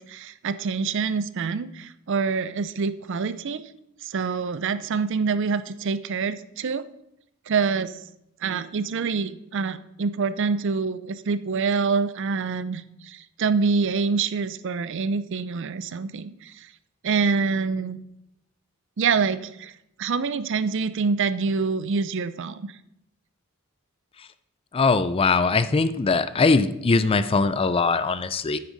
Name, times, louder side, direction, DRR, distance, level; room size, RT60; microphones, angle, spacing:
voice 1, 0.0-3.6 4.0-6.8 7.5-8.0 8.4-16.7 17.0-18.0 19.0-19.7 20.0-22.7, right 5 dB, 60° right, 14 dB, 0.5 m, -26 dB
voice 2, 24.7-28.6, left 4 dB, 25° left, 14 dB, 0.4 m, -21 dB
9.7 x 9.0 x 4.0 m, 0.83 s
head